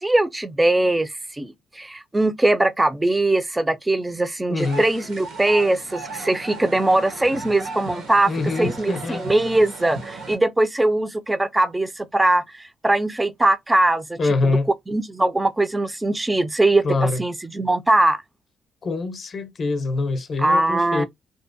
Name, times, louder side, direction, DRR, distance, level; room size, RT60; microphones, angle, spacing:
voice 1, 0.0-14.5 14.9-18.2 20.4-21.0, right 2 dB, 15° right, 0.3 m, -21 dB
voice 2, 4.5-4.8 8.3-9.2 14.2-14.7 16.8-17.2 18.8-21.0, left 3 dB, 45° left, 0.5 m, -24 dB
sound 1, 4.6-10.3, right 3 dB, 85° right, 0.9 m, -36 dB
2.6 x 2.0 x 2.5 m
cardioid pair, 90°, 0 cm